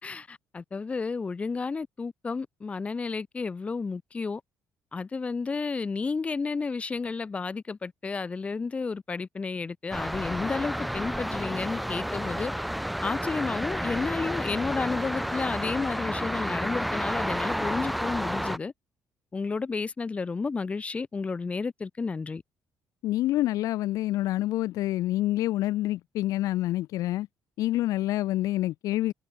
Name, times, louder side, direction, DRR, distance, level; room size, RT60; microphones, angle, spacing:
voice 1, 0.0-4.4 4.9-12.5 13.0-18.7 19.3-22.4, left 4 dB, 20° left, 2.7 m, -32 dB
sound 1, 9.9-18.6, equal, ahead, 0.4 m, -31 dB
voice 2, 23.0-27.3 27.6-29.1, left 15 dB, 75° left, 0.4 m, -27 dB
cardioid pair, 155°, 6 cm